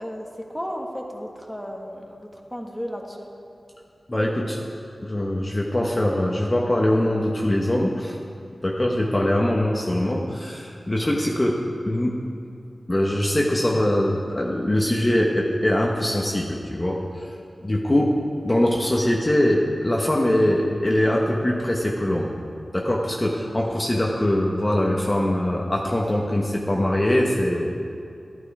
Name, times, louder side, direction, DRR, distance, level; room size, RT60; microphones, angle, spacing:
voice 1, 0.0-3.3, equal, 5° left, 1 dB, 1.6 m, -34 dB
voice 2, 4.1-4.6 5.0-8.1 8.6-11.6 11.9-12.2 12.9-17.0 17.6-18.1 18.4-22.3 22.7-27.8, left 1 dB, 25° left, -2 dB, 1.2 m, -22 dB
11.5 x 11.0 x 4.8 m, 2.4 s
wide cardioid pair, 55°, 0 cm